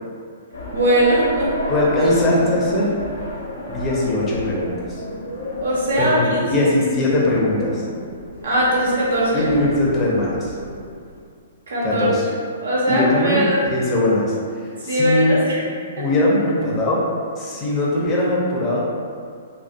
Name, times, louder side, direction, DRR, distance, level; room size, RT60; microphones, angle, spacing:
sound 1, 0.5-11.2, left 1 dB, 65° left, 0.7 m, -31 dB
voice 1, 0.7-1.5 5.6-6.2 6.6-6.7 8.4-9.5 11.7-12.1 12.6-13.6 14.9-15.6 16.0-16.1, right 1 dB, 65° right, -6 dB, 0.5 m, -20 dB
voice 2, 1.7-3.0 3.7-5.0 6.0-7.8 9.3-10.5 11.8-12.3 12.9-14.3 14.8-15.4 16.0-17.0 17.4-18.8, left 1 dB, 20° left, -5 dB, 0.5 m, -20 dB
2.3 x 2.2 x 2.5 m, 2.2 s
figure-of-eight pair, 115°, 0 cm